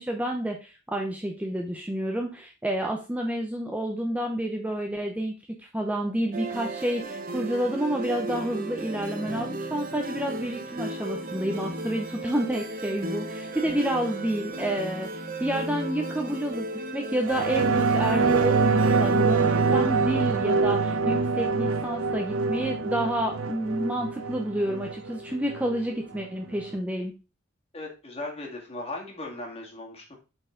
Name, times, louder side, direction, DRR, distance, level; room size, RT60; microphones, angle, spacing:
voice 1, 0.0-16.7 16.9-27.1, right 1 dB, 5° right, 2 dB, 0.7 m, -29 dB
sound 1, 6.3-20.9, right 2 dB, 40° right, 0.9 m, -35 dB
sound 2, 17.2-26.3 26.6-26.7, right 4 dB, 65° right, 0.7 m, -25 dB
voice 2, 27.7-30.2, left 2 dB, 30° left, 0 dB, 2.2 m, -37 dB
7.9 x 4.5 x 3.8 m, 0.31 s
head